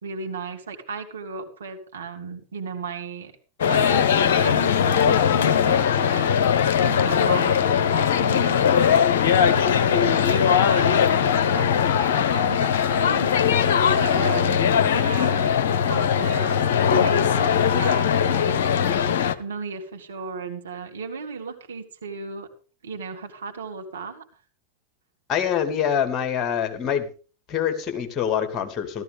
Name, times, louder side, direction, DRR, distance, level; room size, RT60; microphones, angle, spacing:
voice 1, 0.0-3.3 3.6-6.4 6.8-16.7 16.9-18.7 19.3-22.5 22.8-24.2, right 4 dB, 65° right, 4 dB, 2.6 m, -35 dB
sound 1, 3.6-19.3, left 8 dB, 55° left, 1.0 m, -20 dB
voice 2, 25.3-27.1 27.5-29.0, left 8 dB, 30° left, 7 dB, 2.7 m, -25 dB
15.0 x 13.5 x 3.6 m, 0.37 s
figure-of-eight pair, 90°, 0 cm